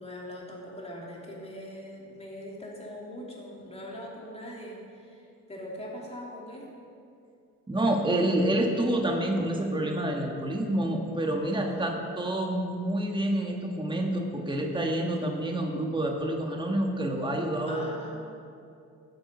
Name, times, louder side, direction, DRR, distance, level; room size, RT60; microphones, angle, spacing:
voice 1, 0.0-6.7 11.7-11.9 17.7-18.1, equal, 20° left, -3 dB, 3.0 m, -41 dB
voice 2, 7.7-17.8, right 1 dB, 15° right, 1 dB, 1.6 m, -28 dB
14.0 x 7.7 x 5.6 m, 2.5 s
cardioid pair, 90°, 33 cm